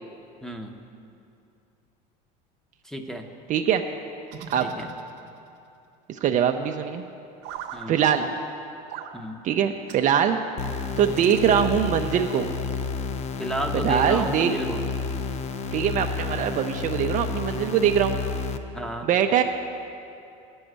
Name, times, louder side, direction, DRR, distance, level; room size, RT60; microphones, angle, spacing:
voice 1, 0.4-0.7 2.8-3.3 4.6-4.9 7.7-7.9 9.1-9.4 13.4-14.8 18.7-19.1, right 1 dB, 5° left, 5 dB, 0.8 m, -32 dB
voice 2, 3.5-3.8 4.5-4.7 6.1-7.1 7.9-8.3 9.4-10.4 11.0-12.5 13.8-14.5 15.7-18.2 19.0-19.4, right 9 dB, 40° right, 5 dB, 0.5 m, -22 dB
sound 1, 4.3-5.5 7.4-7.9 8.9-9.2 9.9-10.1 11.2-12.0, right 8 dB, 70° right, 0.8 m, -40 dB
sound 2, 10.6-18.6, left 5 dB, 35° left, 0.6 m, -30 dB
8.6 x 6.2 x 8.0 m, 2.6 s
supercardioid pair, 105°, 19 cm